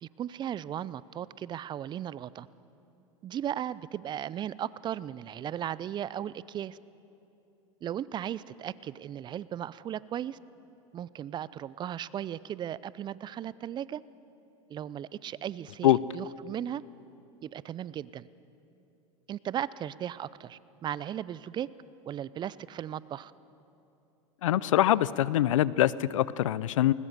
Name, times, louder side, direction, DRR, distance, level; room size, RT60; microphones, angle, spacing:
voice 1, 0.0-2.5 3.2-6.8 7.8-10.4 10.9-14.0 14.7-16.8 17.4-18.3 19.3-21.7 22.1-23.3, right 10 dB, 25° right, 19 dB, 0.5 m, -36 dB
voice 2, 24.4-26.9, left 13 dB, 75° left, 19 dB, 0.6 m, -24 dB
20.5 x 20.0 x 6.7 m, 2.8 s
hypercardioid pair, 100°, 17 cm